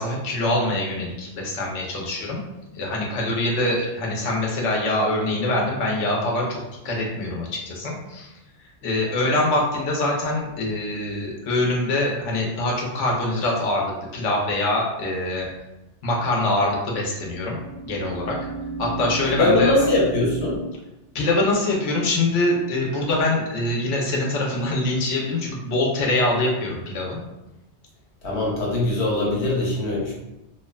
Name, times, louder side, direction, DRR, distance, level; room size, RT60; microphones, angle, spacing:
voice 1, 0.0-2.4 2.7-6.6 6.8-8.3 8.8-15.5 16.0-17.6 17.9-18.4 18.8-19.7 21.1-27.2, left 2 dB, 90° left, -2 dB, 1.0 m, -24 dB
sound 1, 10.4-10.9 17.0-20.6, right 4 dB, 50° left, 0.9 m, -34 dB
voice 2, 19.3-20.6 28.2-30.1, left 2 dB, 70° left, -3 dB, 1.0 m, -21 dB
2.8 x 2.1 x 2.3 m, 0.96 s
omnidirectional pair, 1.2 m